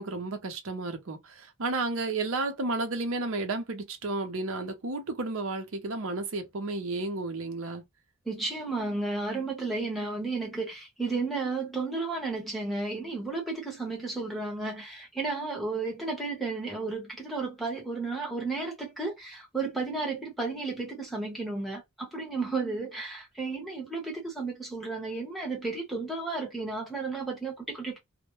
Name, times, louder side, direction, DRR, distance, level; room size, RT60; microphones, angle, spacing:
voice 1, 0.0-7.8, right 3 dB, 70° right, 0.6 m, -32 dB
voice 2, 8.2-28.0, right 3 dB, ahead, 0.8 m, -33 dB
2.1 x 2.1 x 2.9 m
head